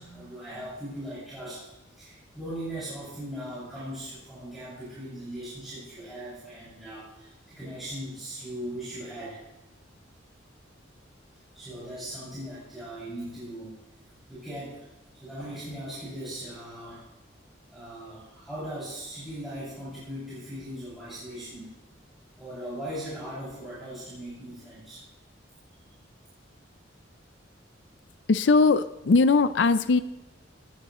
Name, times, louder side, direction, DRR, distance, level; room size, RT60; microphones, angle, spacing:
voice 1, 0.0-1.7 1.9-9.4 11.5-13.7 14.3-14.9 15.2-17.0 17.7-21.7 22.4-25.0, right 1 dB, ahead, -12 dB, 6.2 m, -39 dB
voice 2, 28.3-30.0, left 4 dB, 65° left, 12 dB, 0.5 m, -20 dB
19.5 x 14.0 x 3.1 m, 0.92 s
head